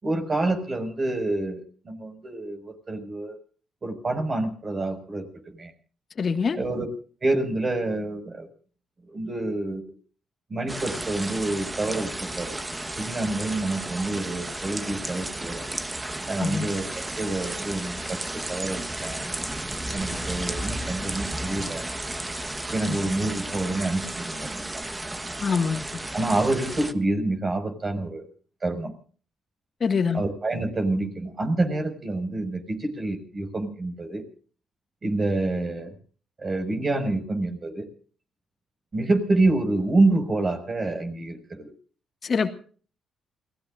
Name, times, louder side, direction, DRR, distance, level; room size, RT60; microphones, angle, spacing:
voice 1, 0.0-3.4 3.8-5.3 5.5-5.7 6.6-6.9 7.2-8.5 9.1-9.9 10.5-12.6 13.0-15.6 16.3-19.2 19.9-21.8 22.7-24.8 26.1-28.2 28.6-28.9 30.1-34.2 35.0-35.9 36.4-37.9 38.9-41.7, right 2 dB, 35° right, 6 dB, 5.7 m, -27 dB
voice 2, 6.2-6.6 16.4-16.7 22.9-23.0 25.4-25.8 29.8-30.2 42.2-42.5, left 5 dB, 45° left, 6 dB, 1.8 m, -24 dB
sound 1, 10.7-26.9, right 1 dB, 15° right, 1.3 m, -33 dB
29.0 x 18.5 x 2.6 m, 0.43 s
cardioid pair, 90°, 0 cm